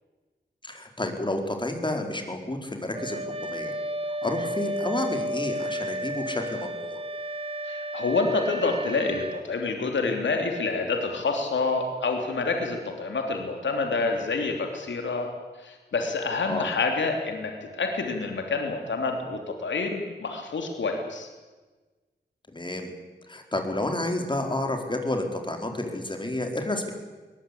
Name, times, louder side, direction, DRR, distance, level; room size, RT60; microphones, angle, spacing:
voice 1, 0.6-3.7 4.2-7.0 16.5-16.7 22.5-22.9 23.3-26.9, left 1 dB, 25° left, 4 dB, 4.6 m, -30 dB
Wind instrument woodwind instrument, 2.9-9.5, right 1 dB, 30° right, 1.5 m, -32 dB
voice 2, 7.6-15.3 15.6-21.3, left 3 dB, 85° left, 3 dB, 3.2 m, -28 dB
22.0 x 19.0 x 8.6 m, 1.3 s
cardioid pair, 60°, 19 cm